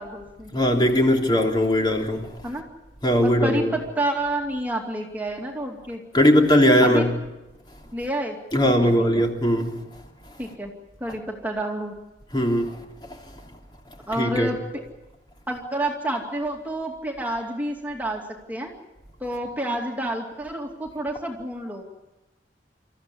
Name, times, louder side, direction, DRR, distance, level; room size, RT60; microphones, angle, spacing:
voice 1, 0.0-0.5 2.4-2.7 3.2-6.0 6.8-7.1 7.9-8.4 8.6-9.2 10.4-10.7 11.0-11.9 14.1-14.8 15.5-18.2 18.5-18.7 19.2-21.8, right 1 dB, 10° right, 0 dB, 2.5 m, -29 dB
voice 2, 0.5-2.3 3.0-3.7 6.1-7.1 8.5-9.8 12.3-12.8 14.2-14.5, equal, 25° left, 1 dB, 3.2 m, -19 dB
28.0 x 14.5 x 10.0 m, 0.99 s
head